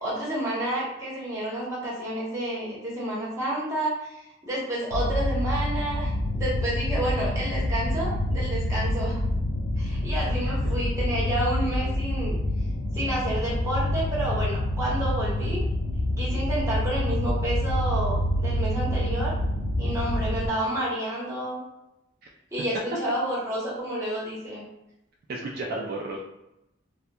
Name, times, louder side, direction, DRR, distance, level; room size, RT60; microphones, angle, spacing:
voice 1, 0.0-9.2 9.8-12.3 12.9-15.6 16.2-19.3 19.8-21.6 22.5-24.6, right 1 dB, 15° right, -7 dB, 0.8 m, -30 dB
sound 1, 4.9-20.5, left 1 dB, 90° left, 0.5 m, -27 dB
voice 2, 25.3-26.2, right 2 dB, 55° right, -2 dB, 0.3 m, -33 dB
2.7 x 2.1 x 2.2 m, 0.89 s
head